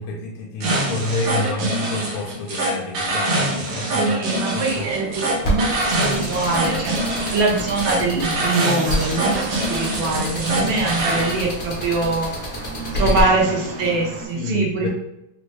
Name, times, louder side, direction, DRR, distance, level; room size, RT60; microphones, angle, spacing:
voice 1, 0.0-4.9 12.8-13.2 13.5-13.6 14.3-14.9, left 3 dB, 75° left, 0 dB, 1.5 m, -29 dB
sound 1, 0.6-11.4, right 1 dB, 90° right, 1.7 m, -24 dB
voice 2, 3.8-5.2 5.5-12.3 12.9-14.9, right 3 dB, 70° right, -1 dB, 1.3 m, -23 dB
sound 2, 4.6-14.3, right 3 dB, 55° right, 1.0 m, -36 dB
sound 3, 5.4-13.2, equal, 50° left, 0.7 m, -28 dB
4.1 x 2.0 x 3.0 m, 0.84 s
omnidirectional pair, 2.4 m